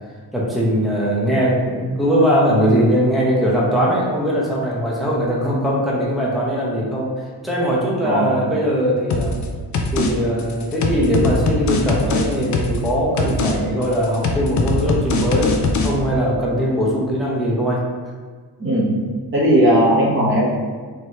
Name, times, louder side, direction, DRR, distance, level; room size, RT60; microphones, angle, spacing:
voice 1, 0.3-7.1 7.4-9.3 9.9-17.8, equal, ahead, -5 dB, 0.8 m, -20 dB
voice 2, 8.0-8.4 18.6-18.9 19.3-20.5, right 1 dB, 30° right, -7 dB, 1.1 m, -17 dB
sound 1, 9.1-9.5 9.7-10.1 10.4-12.9 13.2-13.5 13.8-15.9, left 3 dB, 45° left, 0.4 m, -21 dB
4.6 x 3.0 x 2.9 m, 1.5 s
wide cardioid pair, 155°, 43 cm